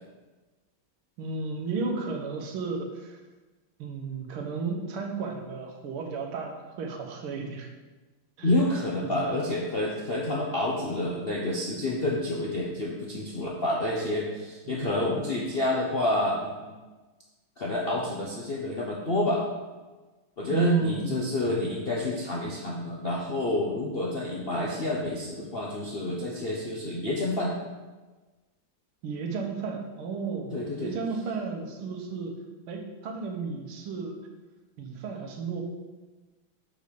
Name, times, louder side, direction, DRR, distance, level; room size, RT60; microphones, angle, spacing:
voice 1, 1.2-3.2 3.8-7.7 8.4-8.5 9.0-9.4 14.7-15.3 20.5-21.4 29.0-32.3 32.7-34.2 34.8-35.6, right 5 dB, 90° right, 2 dB, 1.9 m, -33 dB
voice 2, 8.4-16.7 17.6-19.4 20.4-27.5 30.5-30.9, left 1 dB, 55° left, -3 dB, 0.6 m, -28 dB
6.6 x 5.3 x 5.3 m, 1.2 s
omnidirectional pair, 2.3 m